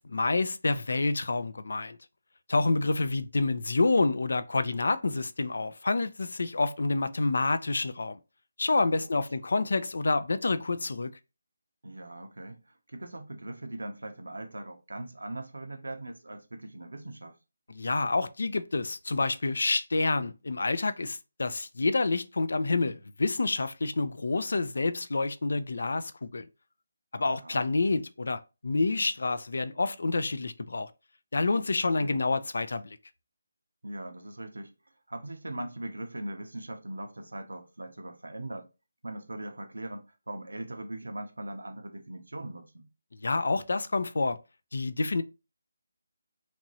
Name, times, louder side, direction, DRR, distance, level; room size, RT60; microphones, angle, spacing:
voice 1, 0.0-2.0 2.5-8.2 8.6-11.1 17.7-26.5 27.1-30.9 31.3-33.0 43.2-44.4 44.7-45.2, left 3 dB, 65° left, 0.3 m, -28 dB
voice 2, 8.9-9.2 11.8-17.4 27.2-27.6 31.7-32.2 33.8-34.7 35.1-38.7 39.0-42.9, right 1 dB, 75° right, 0.6 m, -40 dB
3.0 x 2.6 x 2.6 m
figure-of-eight pair, 155°, 0 cm